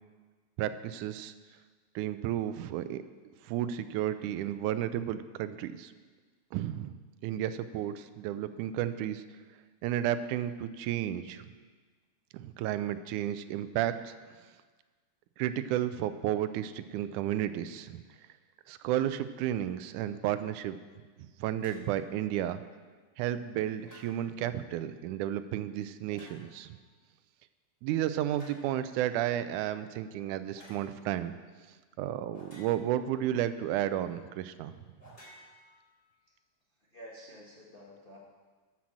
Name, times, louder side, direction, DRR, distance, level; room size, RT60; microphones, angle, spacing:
voice 1, 0.6-1.3 2.0-3.0 3.4-5.9 6.5-7.0 7.2-9.2 9.8-11.4 12.3-14.1 15.4-18.0 18.7-20.8 21.4-22.6 23.2-26.8 27.8-31.4 32.0-34.7, right 11 dB, 90° right, 12 dB, 2.0 m, -32 dB
sound 1, 21.6-21.9 23.8-24.4 26.1-26.7 28.3-28.7 30.5-30.8 32.3-33.1 35.0-36.1, left 1 dB, 25° left, 3.4 m, -54 dB
voice 2, 36.9-38.2, equal, 60° left, -4 dB, 0.5 m, -49 dB
11.5 x 6.1 x 7.3 m, 1.4 s
omnidirectional pair, 3.5 m